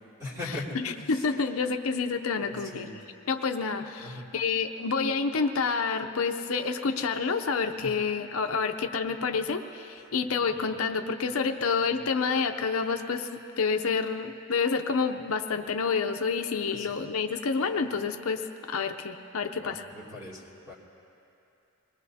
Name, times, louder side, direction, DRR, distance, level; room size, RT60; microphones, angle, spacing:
voice 1, 0.2-0.8 1.1-1.2 2.7-2.9 4.0-4.2 7.8-7.9 10.4-10.6 16.7-16.9 19.5-20.7, left 2 dB, 15° right, -5 dB, 2.7 m, -39 dB
voice 2, 0.8-2.9 3.3-18.4 18.7-19.9, left 5 dB, 70° left, 6 dB, 0.6 m, -28 dB
25.5 x 20.0 x 2.8 m, 2.8 s
head